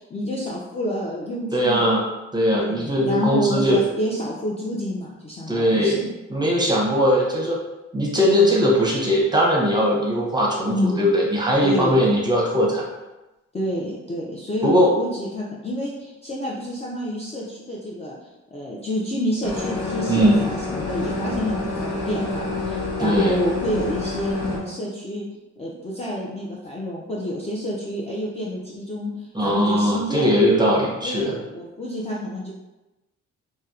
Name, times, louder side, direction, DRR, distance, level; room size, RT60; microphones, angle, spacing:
voice 1, 0.0-1.9 2.6-6.1 10.7-11.1 11.6-12.1 13.5-25.2 25.6-30.4 31.0-32.5, left 1 dB, 20° left, -5 dB, 0.4 m, -28 dB
voice 2, 1.5-2.0 2.3-3.8 5.5-6.0 6.3-7.6 7.9-12.8 14.6-14.9 20.1-20.4 23.0-23.4 29.3-31.3, equal, 15° right, -3 dB, 0.7 m, -19 dB
sound 1, 19.4-24.6, left 3 dB, 55° left, 0.8 m, -28 dB
2.6 x 2.0 x 2.3 m, 1.0 s
cardioid pair, 75°, 30 cm